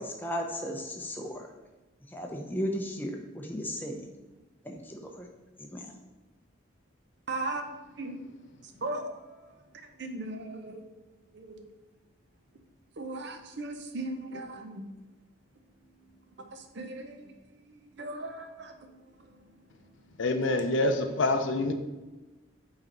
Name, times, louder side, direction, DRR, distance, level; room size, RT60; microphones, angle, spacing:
voice 1, 0.0-1.5 2.1-4.1 4.6-5.3 5.6-5.9, equal, 10° left, 1 dB, 0.6 m, -35 dB
voice 2, 7.3-7.6 8.0-8.1 8.8-9.0 10.0-10.8 13.0-14.7 16.8-17.1 18.0-18.4, right 2 dB, 55° right, 6 dB, 0.7 m, -36 dB
voice 3, 20.2-21.7, left 2 dB, 65° left, 6 dB, 0.6 m, -26 dB
5.6 x 4.1 x 5.3 m, 1.1 s
head